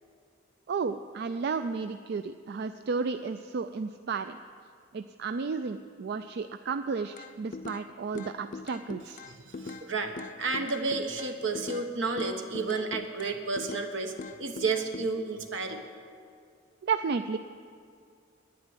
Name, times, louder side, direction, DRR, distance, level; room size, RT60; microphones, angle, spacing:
voice 1, 0.7-4.4 4.9-9.2 16.8-17.4, right 5 dB, 60° right, 9 dB, 0.4 m, -32 dB
sound 1, 7.2-7.9 8.2-9.9 10.2-11.9 12.2-13.9 14.2-15.1, left 3 dB, 45° left, 0.5 m, -41 dB
voice 2, 9.2-14.1 14.4-15.8, right 4 dB, 80° right, 5 dB, 1.3 m, -31 dB
11.0 x 9.7 x 9.7 m, 2.3 s
head